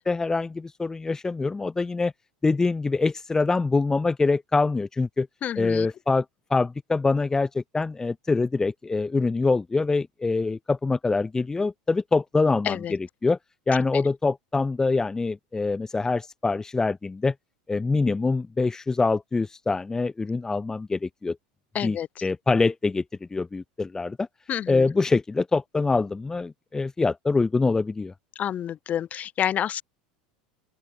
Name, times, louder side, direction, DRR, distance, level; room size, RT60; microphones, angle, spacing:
voice 1, 0.1-2.1 2.4-5.3 5.6-6.2 6.5-13.4 13.7-17.3 17.7-21.4 21.8-22.0 22.2-23.0 23.3-24.3 24.7-28.1, left 3 dB, 15° left, 0.8 m, -24 dB
voice 2, 5.4-5.9 12.6-12.9 13.9-14.0 21.7-22.2 24.5-24.9 28.3-29.8, left 10 dB, 40° left, 2.8 m, -29 dB
open air
hypercardioid pair, 100°, 4 cm